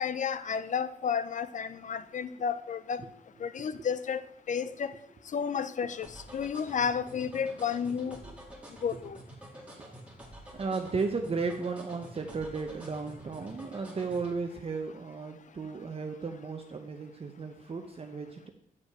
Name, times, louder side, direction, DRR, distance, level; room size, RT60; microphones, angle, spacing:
voice 1, 0.0-3.0 3.4-4.9 5.3-8.2 8.8-9.2, left 7 dB, 60° left, 14 dB, 0.5 m, -32 dB
sound 1, 6.0-14.3, right 1 dB, 10° right, 1.9 m, -48 dB
voice 2, 10.5-18.5, right 4 dB, 40° right, 4 dB, 0.7 m, -35 dB
8.4 x 5.2 x 4.8 m, 0.73 s
wide cardioid pair, 95°, 15 cm